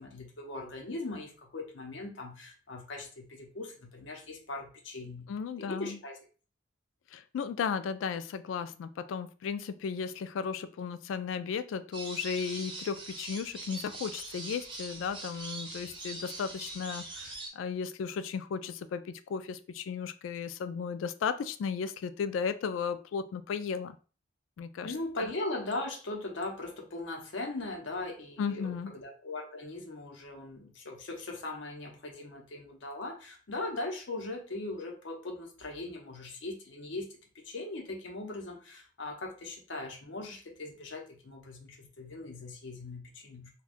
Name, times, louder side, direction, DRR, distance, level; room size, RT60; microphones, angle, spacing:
voice 1, 0.0-5.3 5.6-6.2 24.8-37.1 37.3-43.5, left 2 dB, 70° left, 2 dB, 0.7 m, -39 dB
voice 2, 5.3-6.0 7.1-24.0 24.6-25.3 28.4-28.9, left 6 dB, 90° left, 12 dB, 0.3 m, -35 dB
sound 1, 11.9-17.5, right 2 dB, 25° right, 0.6 m, -42 dB
2.5 x 2.2 x 3.5 m, 0.37 s
head